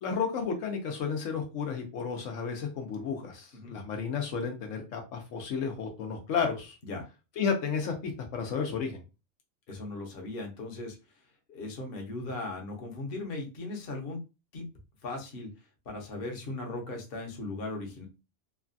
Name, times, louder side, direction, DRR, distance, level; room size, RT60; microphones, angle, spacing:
voice 1, 0.0-6.8 7.4-9.0, left 6 dB, 80° left, 3 dB, 1.0 m, -32 dB
voice 2, 9.7-11.0 11.5-14.2 14.5-14.6 15.0-15.5 15.9-18.0, left 2 dB, 55° left, 1 dB, 0.9 m, -38 dB
3.2 x 2.2 x 2.5 m, 0.29 s
omnidirectional pair, 1.3 m